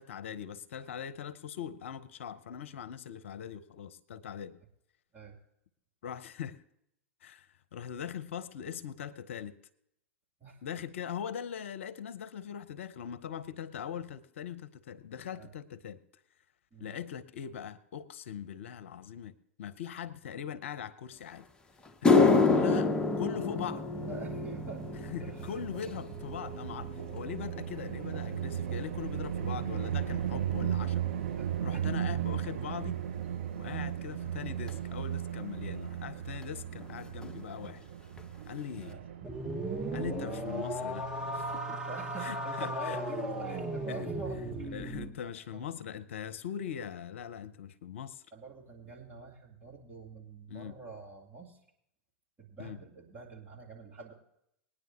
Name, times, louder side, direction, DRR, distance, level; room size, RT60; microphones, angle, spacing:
voice 1, 0.0-4.6 6.0-6.6 7.2-9.6 10.6-16.0 16.8-19.3 19.6-21.5 22.0-22.9 23.2-23.8 25.1-31.1 31.6-33.0 33.6-37.8 38.5-39.0 39.9-41.8 42.2-43.0 43.9-44.1 44.7-48.2 50.5-50.8 52.6-52.8, left 8 dB, 65° left, 13 dB, 0.7 m, -41 dB
sound 1, 21.3-21.4 21.8-30.4 30.6-31.1 31.8-31.9 34.7-34.8 36.4-36.5 36.7-36.9 37.2-37.7 38.2-38.3 38.8-38.9, left 4 dB, 10° left, 0.8 m, -30 dB
voice 2, 22.1-23.5 24.1-24.9 25.2-25.8 31.4-31.9 33.7-33.9 38.8-39.0 41.7-44.8 45.2-45.7 48.3-51.6 52.4-54.1, right 4 dB, 25° right, -2 dB, 3.0 m, -46 dB
sound 2, 23.9-41.6, right 10 dB, 60° right, 5.2 m, -37 dB
sound 3, 39.2-45.1, right 1 dB, 10° right, 1.3 m, -36 dB
20.0 x 9.9 x 2.9 m, 0.75 s
figure-of-eight pair, 100°, 7 cm